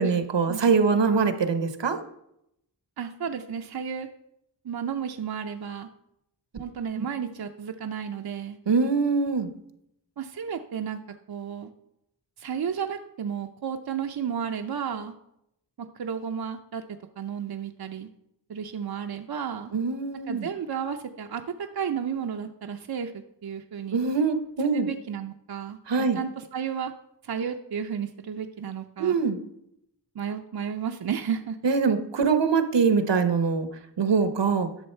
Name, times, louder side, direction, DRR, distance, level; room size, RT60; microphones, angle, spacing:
voice 1, 0.0-2.0 7.0-7.1 8.7-9.5 19.7-20.5 23.9-24.9 25.9-26.2 29.0-29.4 31.6-33.7 34.0-34.7, right 5 dB, 75° right, 9 dB, 1.0 m, -23 dB
voice 2, 3.0-4.1 4.6-5.9 6.6-8.6 10.2-11.0 11.3-11.7 12.4-15.1 15.8-18.1 18.5-19.7 20.3-24.0 24.7-25.8 26.1-26.9 27.2-29.2 30.1-31.6, right 7 dB, 60° right, 5 dB, 0.6 m, -33 dB
11.5 x 6.3 x 4.4 m, 0.80 s
wide cardioid pair, 55°, 43 cm